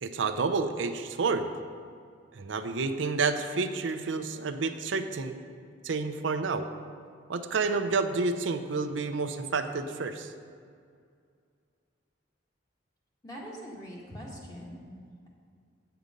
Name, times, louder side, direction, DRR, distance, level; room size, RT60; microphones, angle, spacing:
voice 1, 0.0-1.5 2.4-5.4 5.8-6.7 7.3-10.3, right 4 dB, 80° right, 8 dB, 0.6 m, -29 dB
voice 2, 13.2-14.9, equal, 20° left, -4 dB, 1.8 m, -42 dB
8.5 x 8.0 x 5.2 m, 2.2 s
head